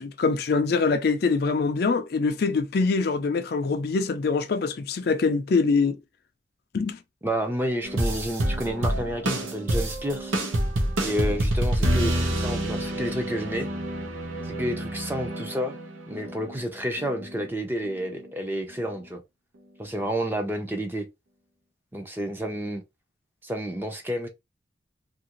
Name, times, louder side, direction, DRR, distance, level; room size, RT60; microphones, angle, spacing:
voice 1, 0.0-6.0 6.7-7.0, left 4 dB, 50° left, 0.4 m, -24 dB
voice 2, 7.2-10.3 11.0-13.7 14.4-15.8 16.1-19.2 19.8-21.1 21.9-22.8 23.4-24.3, equal, 10° right, 0.5 m, -30 dB
sound 1, 7.8-16.6 17.0-17.5 17.8-18.3 18.7-18.8, right 1 dB, 90° right, 0.9 m, -28 dB
2.8 x 2.5 x 2.9 m
head